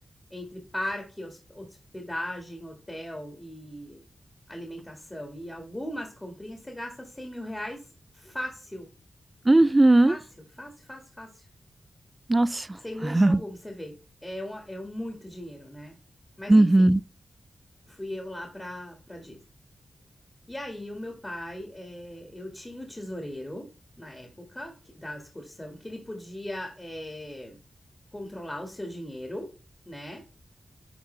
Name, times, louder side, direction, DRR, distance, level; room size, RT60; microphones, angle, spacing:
voice 1, 0.3-4.0 4.5-7.9 8.1-8.9 10.1-10.2 10.6-11.5 12.8-16.0 16.4-16.9 17.9-19.4 20.5-23.7 24.0-27.6 28.1-29.5 29.9-30.2, left 1 dB, 15° left, 1.8 m, -38 dB
voice 2, 9.5-10.2 12.3-12.7 13.0-13.4 16.5-17.0, right 2 dB, 25° right, 0.3 m, -18 dB
9.6 x 3.6 x 3.3 m
cardioid pair, 75°, 0 cm